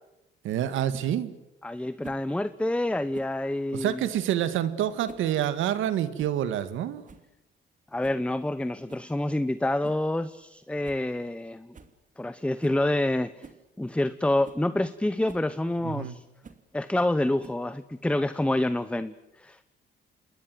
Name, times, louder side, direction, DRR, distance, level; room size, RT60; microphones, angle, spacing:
voice 1, 0.4-1.3 3.7-7.0 15.8-16.2, right 11 dB, 85° right, 13 dB, 1.9 m, -27 dB
sound 1, 0.9-1.1 2.0-2.3 3.1-3.4 4.1-4.4 4.9-5.3 5.6-5.7 6.2-6.4 6.8-6.9 7.1-7.3 8.0-8.2 8.9-9.1 9.8-10.1 10.4-10.5 10.8-11.0 11.3-11.4 11.7-12.0 12.6-12.8 13.4-13.6 14.1-14.2 14.4-14.6 15.3-15.5 16.4-16.7 17.4-17.8, right 5 dB, 40° right, 2.7 m, -47 dB
voice 2, 1.6-4.0 7.9-11.7 12.2-13.3 13.8-16.2 16.7-19.6, left 1 dB, 5° left, 14 dB, 0.9 m, -27 dB
28.0 x 21.5 x 7.9 m, 0.90 s
cardioid pair, 90°, 20 cm